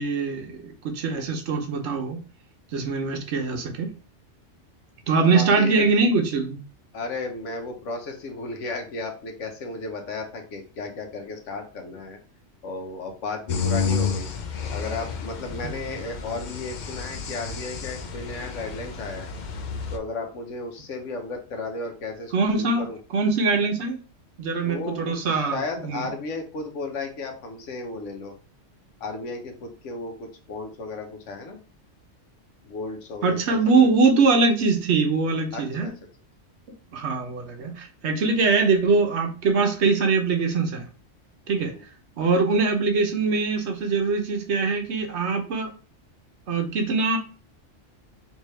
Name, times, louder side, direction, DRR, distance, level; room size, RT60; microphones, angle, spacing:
voice 1, 0.0-2.2 2.7-3.9 5.1-6.6 15.6-15.7 22.3-22.9 23.1-24.0 24.4-26.1 33.2-35.9 36.9-40.9 41.5-41.7 42.2-45.7 46.5-47.2, right 4 dB, 70° right, 4 dB, 1.0 m, -22 dB
voice 2, 5.1-5.9 6.9-12.2 12.6-14.3 14.7-19.3 19.9-23.0 24.6-28.3 29.0-31.6 32.6-33.9 35.5-35.9 41.6-41.8, left 3 dB, 80° left, 4 dB, 1.2 m, -34 dB
sound 1, 13.5-20.0, left 6 dB, 60° left, 0.5 m, -31 dB
3.5 x 2.7 x 3.1 m, 0.36 s
omnidirectional pair, 1.3 m